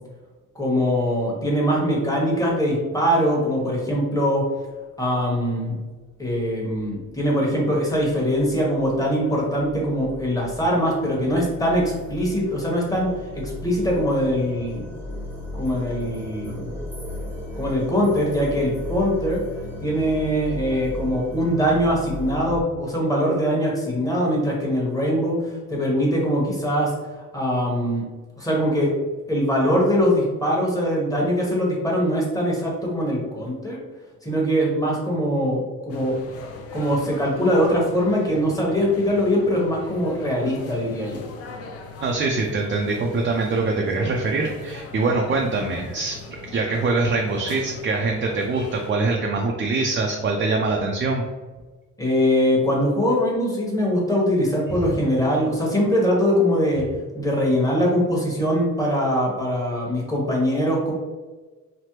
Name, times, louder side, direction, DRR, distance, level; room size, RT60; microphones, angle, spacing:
voice 1, 0.5-4.5 5.0-5.7 6.2-14.9 15.5-16.7 17.6-19.4 19.8-26.9 27.3-28.0 28.4-28.9 29.3-33.8 34.2-36.2 36.7-41.3 52.0-56.9 57.1-60.9, equal, 10° left, -3 dB, 1.1 m, -22 dB
sound 1, 5.7-5.8 6.3-22.6, left 1 dB, 5° right, 0.9 m, -36 dB
sound 2, 35.9-48.9, left 3 dB, 55° left, 0.5 m, -40 dB
voice 2, 42.0-46.2 46.5-51.2, right 3 dB, 40° right, 0 dB, 0.4 m, -23 dB
3.3 x 2.1 x 2.9 m, 1.3 s
cardioid pair, 90°, 30 cm